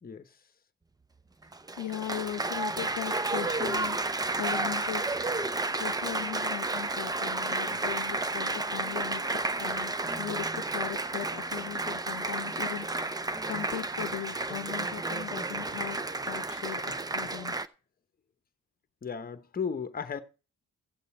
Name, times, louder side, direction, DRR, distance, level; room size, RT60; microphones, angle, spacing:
Applause, 1.4-17.7, right 2 dB, 15° right, 0.6 m, -32 dB
voice 1, 1.8-4.0 4.4-5.1 5.7-16.0 16.2-17.6, left 13 dB, 85° left, 0.7 m, -39 dB
voice 2, 19.0-20.2, left 6 dB, 30° left, 1.0 m, -35 dB
15.0 x 6.8 x 4.3 m
cardioid pair, 90°, 30 cm